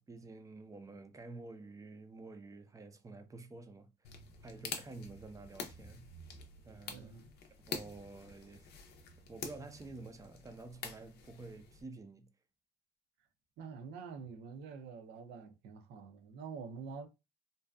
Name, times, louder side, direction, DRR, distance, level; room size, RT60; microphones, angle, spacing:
voice 1, 0.0-3.9 4.4-6.1 6.6-7.3 7.7-8.7 9.3-12.3, right 3 dB, 20° right, 0.4 m, -50 dB
sound 1, 4.0-11.8, left 5 dB, 75° left, 0.5 m, -47 dB
voice 2, 6.9-7.3 13.6-17.1, right 5 dB, 80° right, 0.6 m, -47 dB
2.6 x 2.2 x 2.2 m
cardioid pair, 110°, 17 cm